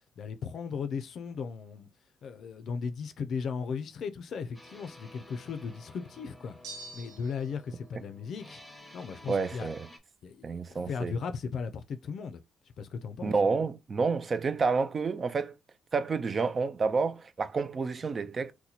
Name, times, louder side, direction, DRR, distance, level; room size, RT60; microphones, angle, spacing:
voice 1, 0.2-1.9 2.2-6.6 6.9-8.6 8.9-9.7 10.2-12.4 12.8-13.3, left 6 dB, 65° left, 0.5 m, -36 dB
sound 1, 4.5-10.0, left 1 dB, 5° left, 0.8 m, -52 dB
sound 2, 6.6-7.6, right 2 dB, 90° right, 0.7 m, -45 dB
voice 2, 9.3-9.9 10.4-11.1 13.2-15.5 15.9-18.5, right 4 dB, 40° right, 0.4 m, -29 dB
2.8 x 2.2 x 3.9 m
cardioid pair, 90°, 0 cm